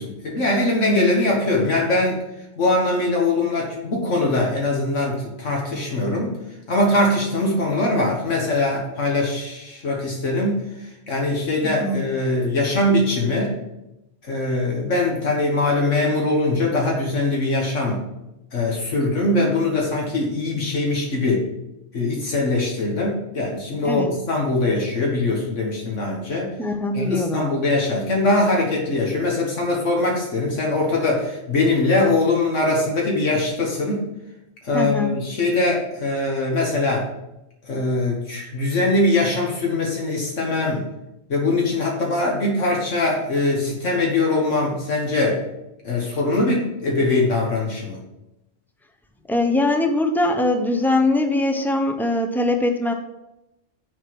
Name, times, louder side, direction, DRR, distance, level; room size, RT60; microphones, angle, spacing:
voice 1, 0.0-2.2 2.6-6.3 6.7-10.6 11.1-13.5 14.3-18.0 18.5-21.4 21.9-26.5 26.9-34.0 34.6-37.1 37.6-40.8 41.3-45.4 45.8-48.0, left 2 dB, 75° left, -1 dB, 1.7 m, -22 dB
voice 2, 11.6-12.0 23.8-24.1 26.6-27.5 34.7-35.1 49.3-52.9, left 2 dB, ahead, 4 dB, 0.4 m, -21 dB
6.8 x 4.6 x 6.1 m, 0.91 s
omnidirectional pair, 1.3 m